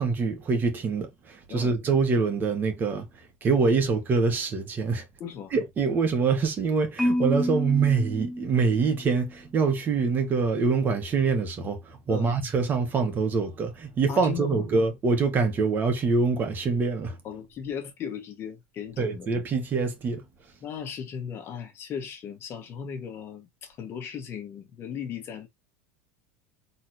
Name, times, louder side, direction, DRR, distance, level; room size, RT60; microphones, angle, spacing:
voice 1, 0.0-3.1 3.4-5.0 5.5-17.2 19.0-20.2, right 4 dB, 25° right, 1.9 m, -25 dB
voice 2, 5.2-5.5 12.1-12.4 14.1-14.7 17.2-19.3 20.6-25.5, left 7 dB, 35° left, 1.9 m, -37 dB
Marimba xylophone, 7.0-9.2, left 1 dB, ahead, 0.9 m, -29 dB
4.4 x 3.9 x 3.1 m
supercardioid pair, 135°, 7 cm